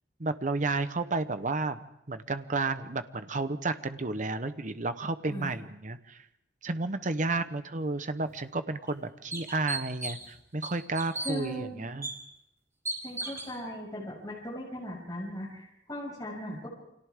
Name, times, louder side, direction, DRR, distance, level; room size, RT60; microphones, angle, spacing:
voice 1, 0.2-1.8 2.1-6.2 6.6-12.1, right 3 dB, 45° right, 10 dB, 1.0 m, -32 dB
sound 1, 8.3-8.4 8.9-9.0 9.3-10.3 10.6-11.3 12.0-12.1 12.9-13.5, right 2 dB, 15° right, 4.8 m, -35 dB
voice 2, 11.2-11.9 13.0-16.7, equal, 20° left, -4 dB, 6.5 m, -38 dB
29.0 x 25.5 x 3.7 m, 0.82 s
head